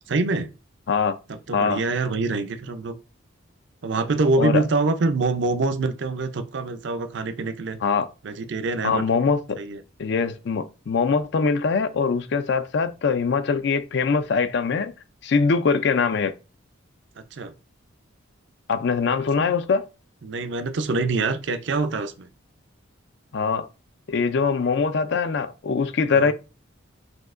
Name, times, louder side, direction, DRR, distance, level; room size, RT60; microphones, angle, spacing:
voice 1, 0.1-0.5 1.5-2.9 3.8-7.8 8.2-9.0 9.6-9.8 17.3-17.5 19.4-19.5 20.2-22.3 26.1-26.3, right 3 dB, 55° right, 0.5 m, -25 dB
voice 2, 8.8-9.6 10.0-14.9 15.2-16.3 18.7-19.8 23.3-23.7 24.1-26.3, left 5 dB, 55° left, 0.4 m, -22 dB
6.0 x 2.8 x 2.5 m
head